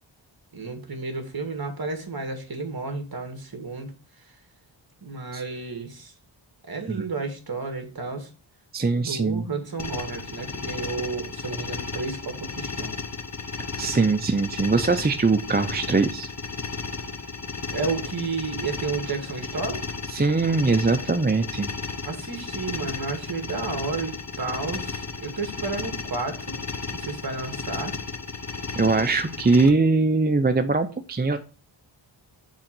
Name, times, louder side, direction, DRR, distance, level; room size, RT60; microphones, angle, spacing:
voice 1, 0.5-3.9 5.0-6.1 6.7-8.3 9.0-12.9 17.7-19.8 22.0-26.5 26.9-27.9, right 4 dB, 45° right, 5 dB, 2.1 m, -32 dB
voice 2, 8.7-9.4 13.8-16.3 20.1-21.7 28.8-31.4, right 3 dB, 20° right, 7 dB, 0.6 m, -22 dB
sound 1, 9.8-29.7, left 4 dB, 35° left, 1.1 m, -34 dB
7.4 x 3.8 x 6.1 m, 0.34 s
wide cardioid pair, 85°, 49 cm